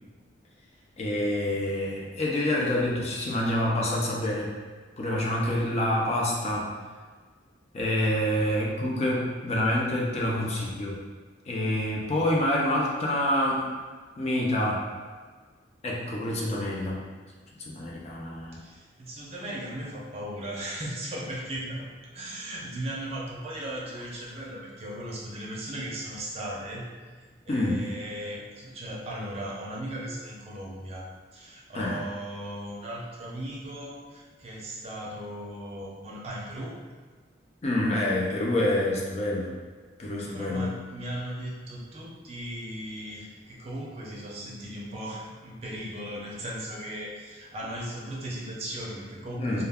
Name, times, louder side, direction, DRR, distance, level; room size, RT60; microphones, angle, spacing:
voice 1, 1.0-4.5 5.0-6.7 7.7-11.0 11.5-13.7 14.2-14.8 15.8-17.1 17.7-18.6 27.5-27.9 31.7-32.0 37.6-39.6 40.0-40.8 49.4-49.6, left 1 dB, 35° left, -3 dB, 0.5 m, -27 dB
voice 2, 8.1-8.6 10.4-10.8 18.5-21.9 22.1-26.8 27.4-31.1 31.3-36.7 40.3-49.6, right 1 dB, 35° right, -4 dB, 0.5 m, -37 dB
2.2 x 2.2 x 3.4 m, 1.5 s
head